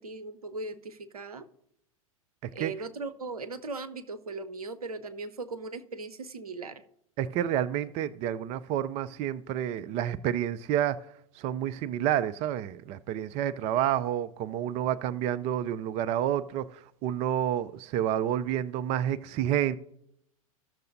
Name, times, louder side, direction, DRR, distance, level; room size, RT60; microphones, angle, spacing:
voice 1, 0.0-1.5 2.5-6.8, right 3 dB, 85° right, 0.8 m, -38 dB
voice 2, 7.2-11.0 11.4-19.8, right 11 dB, 35° right, 0.4 m, -29 dB
14.5 x 6.6 x 2.6 m
hypercardioid pair, 100°, 19 cm